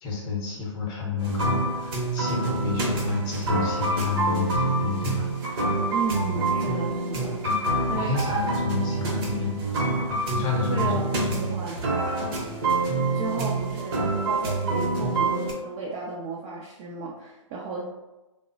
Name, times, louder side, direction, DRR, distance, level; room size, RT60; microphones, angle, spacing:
voice 1, 0.0-5.6 7.4-7.6 7.9-9.7 10.1-11.3, left 4 dB, 25° left, -2 dB, 0.8 m, -30 dB
sound 1, 1.2-15.5, right 2 dB, 45° right, 0.8 m, -26 dB
voice 2, 5.9-7.4 7.9-8.5 10.7-12.3 13.1-17.8, right 3 dB, 30° right, -3 dB, 0.4 m, -34 dB
3.5 x 2.0 x 2.5 m, 1.0 s
figure-of-eight pair, 115°, 17 cm